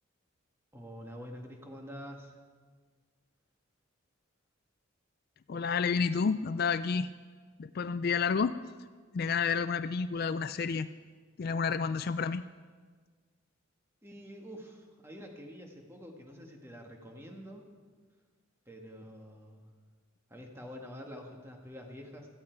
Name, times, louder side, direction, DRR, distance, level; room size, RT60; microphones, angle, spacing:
voice 1, 0.7-2.3 14.0-17.6 18.7-19.7 20.3-22.3, equal, 10° right, 1 dB, 1.7 m, -47 dB
voice 2, 5.5-7.1 7.6-8.6 9.1-10.9 11.4-12.4, left 5 dB, 50° left, 13 dB, 0.3 m, -30 dB
17.0 x 14.0 x 4.6 m, 1.5 s
head